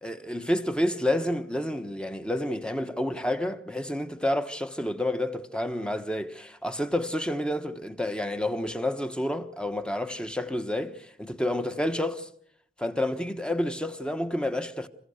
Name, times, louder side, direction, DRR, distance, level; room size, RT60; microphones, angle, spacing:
voice 1, 0.0-12.3 12.8-14.9, left 1 dB, 5° left, 1.3 m, -29 dB
27.5 x 16.0 x 6.6 m
head